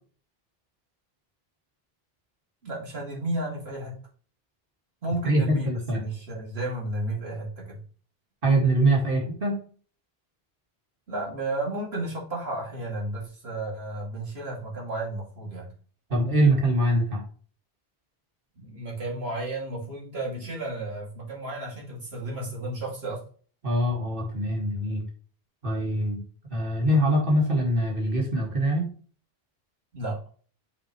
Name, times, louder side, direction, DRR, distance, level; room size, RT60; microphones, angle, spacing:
voice 1, 2.6-4.0 5.0-7.8 11.1-15.7 18.6-23.2 29.9-30.3, right 2 dB, 85° right, -2 dB, 2.8 m, -33 dB
voice 2, 5.2-6.0 8.4-9.6 16.1-17.2 23.6-25.0 25.6-26.2 26.5-28.9, right 1 dB, 60° right, -1 dB, 2.2 m, -23 dB
6.7 x 5.8 x 3.1 m, 0.41 s
omnidirectional pair, 1.0 m